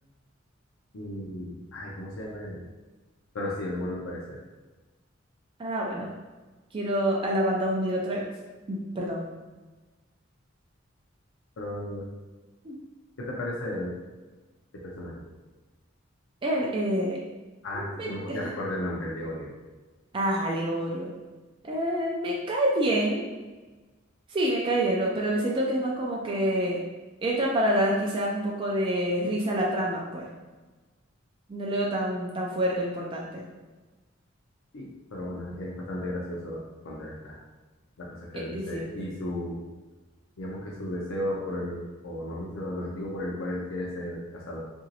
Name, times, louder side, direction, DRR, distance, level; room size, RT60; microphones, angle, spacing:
voice 1, 0.9-2.6 3.3-4.4 11.6-12.1 13.2-13.9 14.7-15.2 17.6-19.5 34.7-37.4 38.0-39.6 40.4-44.6, left 1 dB, 75° left, -3 dB, 0.5 m, -34 dB
voice 2, 5.6-6.1 6.7-8.2 8.7-9.2 12.6-12.8 16.4-17.2 17.7-18.1 20.1-21.1 21.6-23.2 24.3-26.8 27.2-30.3 31.5-33.5 38.5-38.8, right 1 dB, 25° right, -3 dB, 0.4 m, -27 dB
2.9 x 2.6 x 2.7 m, 1.2 s
head